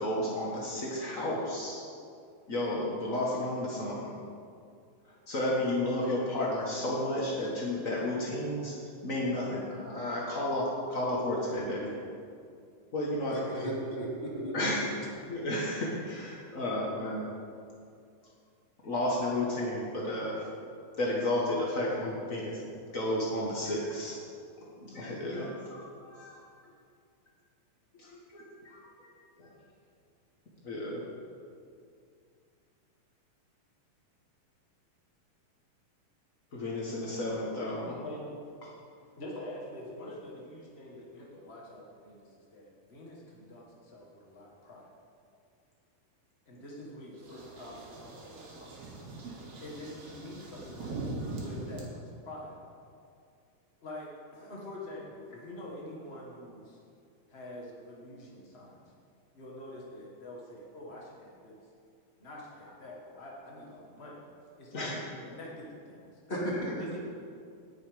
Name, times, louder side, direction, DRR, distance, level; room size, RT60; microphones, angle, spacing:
voice 1, 0.0-1.8 2.5-4.1 5.3-8.7 9.0-11.9 12.9-13.3 14.5-14.9 15.3-17.3 18.8-20.4 21.0-22.6 22.9-24.1 24.8-26.4 28.0-29.1 29.4-29.5 30.6-31.0 36.5-38.0 64.7-65.0, left 1 dB, 60° left, -4 dB, 0.8 m, -32 dB
voice 2, 13.3-14.5 66.3-66.8, right 1 dB, 20° left, -5 dB, 2.3 m, -34 dB
voice 3, 38.0-38.8 39.2-44.9 46.5-48.3 49.6-52.6 53.8-56.8 57.3-58.8 59.3-61.6 62.2-64.2 64.6-66.1 66.7-67.0, left 1 dB, 90° left, -3 dB, 0.5 m, -45 dB
sound 1, 47.2-51.8, right 2 dB, 80° right, 3.8 m, -41 dB
19.0 x 7.0 x 5.1 m, 2.4 s
omnidirectional pair, 4.1 m